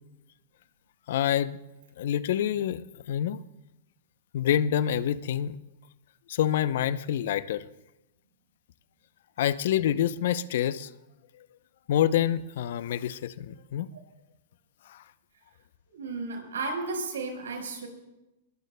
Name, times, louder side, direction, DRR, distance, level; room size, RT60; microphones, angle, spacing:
voice 1, 1.1-1.6 2.0-3.4 4.3-5.6 6.3-7.6 9.4-10.9 11.4-11.5 11.9-13.9 14.9-15.0, left 10 dB, 70° left, 15 dB, 0.6 m, -27 dB
voice 2, 15.9-17.9, right 3 dB, 85° right, 2 dB, 4.6 m, -33 dB
22.0 x 20.0 x 2.2 m, 0.96 s
hypercardioid pair, 115°, 0 cm